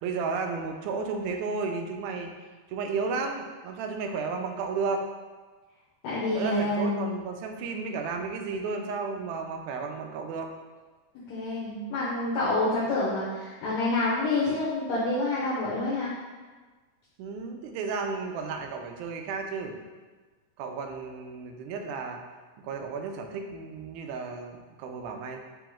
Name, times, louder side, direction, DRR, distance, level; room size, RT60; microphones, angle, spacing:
voice 1, 0.0-2.3 2.7-5.1 6.3-10.5 17.2-19.8 20.6-22.2 22.6-25.4, right 4 dB, 85° right, 4 dB, 1.9 m, -33 dB
voice 2, 6.0-7.1 11.3-16.1, left 2 dB, 75° left, -8 dB, 1.9 m, -27 dB
4.8 x 2.9 x 3.5 m, 1.3 s
omnidirectional pair, 3.4 m